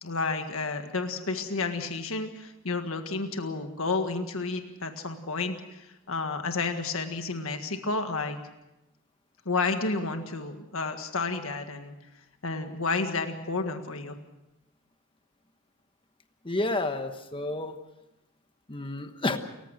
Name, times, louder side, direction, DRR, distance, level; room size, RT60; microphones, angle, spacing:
voice 1, 0.0-8.4 9.4-11.9 12.4-14.1, left 3 dB, 70° left, 6 dB, 1.7 m, -31 dB
voice 2, 16.4-17.8 18.7-19.4, left 2 dB, 25° left, 8 dB, 1.2 m, -30 dB
29.0 x 15.5 x 6.5 m, 0.95 s
head